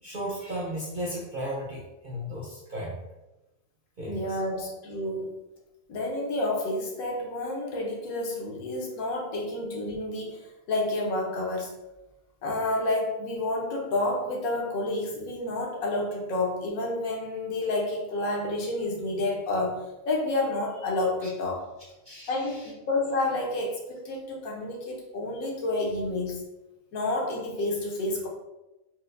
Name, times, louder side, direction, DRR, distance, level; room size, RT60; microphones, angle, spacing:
voice 1, 0.0-3.0 4.0-4.6 21.2-21.3 22.0-22.7, equal, 65° right, -5 dB, 0.5 m, -35 dB
voice 2, 4.1-5.3 5.9-11.7 12.4-21.7 22.3-26.4 26.9-28.3, left 2 dB, 80° left, -1 dB, 1.2 m, -29 dB
4.2 x 2.0 x 2.5 m, 0.99 s
omnidirectional pair, 1.5 m